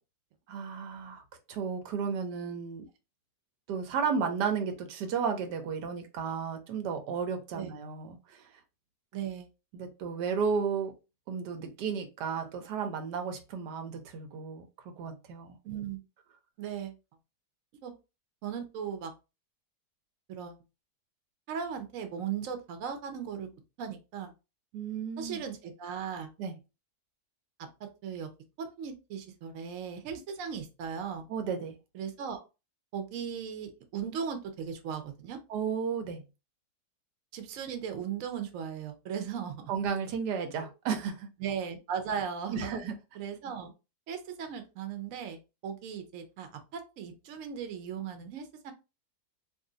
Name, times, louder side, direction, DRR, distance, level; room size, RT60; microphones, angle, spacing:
voice 1, 0.5-1.2 1.5-2.9 3.7-8.5 9.7-10.9 11.3-14.7 15.0-15.6 24.7-25.4 26.4-26.5 31.3-31.8 35.5-36.2 39.7-41.3 42.5-43.0, right 6 dB, 85° right, 7 dB, 1.3 m, -33 dB
voice 2, 9.1-9.5 15.6-16.0 16.6-16.9 17.8-17.9 18.4-19.1 20.3-20.6 21.5-24.3 25.2-26.3 27.6-28.3 28.6-31.3 31.9-32.4 32.9-35.4 37.3-39.7 41.4-42.8 43.2-43.7 44.1-48.7, right 7 dB, 60° right, 7 dB, 1.0 m, -37 dB
2.7 x 2.5 x 3.8 m, 0.28 s
omnidirectional pair, 1.7 m